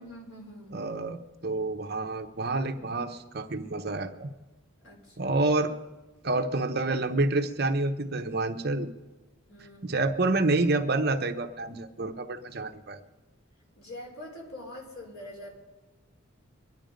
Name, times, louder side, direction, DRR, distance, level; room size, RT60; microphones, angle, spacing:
voice 1, 0.0-0.8 4.8-5.4 9.5-10.0 13.8-15.6, left 1 dB, 85° left, 0 dB, 4.3 m, -44 dB
voice 2, 0.7-4.3 5.2-5.7 6.2-8.9 9.8-13.0, right 2 dB, 50° right, 7 dB, 0.9 m, -28 dB
23.0 x 11.0 x 5.2 m, 1.2 s
head